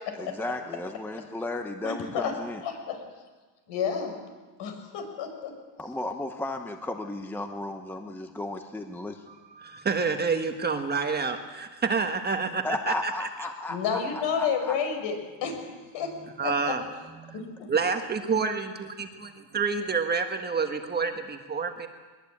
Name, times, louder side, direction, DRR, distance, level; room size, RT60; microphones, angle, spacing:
voice 1, 0.1-2.6 5.8-9.2 12.6-14.7, left 2 dB, 5° left, 5 dB, 1.0 m, -34 dB
voice 2, 1.8-2.3 2.6-3.0 3.7-4.1 4.6-5.5 13.7-15.6 15.9-16.1 16.4-16.7 17.3-17.7, left 6 dB, 60° left, 5 dB, 5.9 m, -30 dB
voice 3, 9.6-13.1 16.1-16.8 17.2-17.4 17.7-18.9 19.5-21.9, right 5 dB, 20° right, 5 dB, 1.4 m, -28 dB
21.5 x 21.0 x 8.7 m, 1.3 s
cardioid pair, 150°, 50 cm